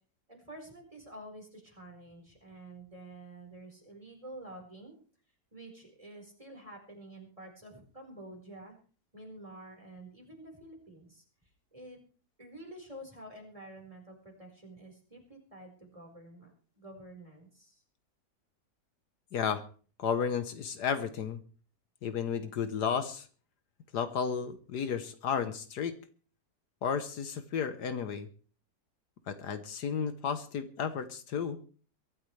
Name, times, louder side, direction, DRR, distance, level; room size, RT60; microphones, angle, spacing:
voice 1, 0.3-4.9 5.5-8.7 9.1-11.2 11.7-12.0 12.4-17.8, right 1 dB, 20° right, 1 dB, 4.8 m, -49 dB
voice 2, 19.3-19.6 20.0-21.4 22.0-23.3 23.9-25.9 26.8-28.3 29.3-31.6, left 7 dB, 75° left, 10 dB, 1.6 m, -33 dB
23.0 x 13.0 x 3.3 m, 0.40 s
omnidirectional pair, 1.8 m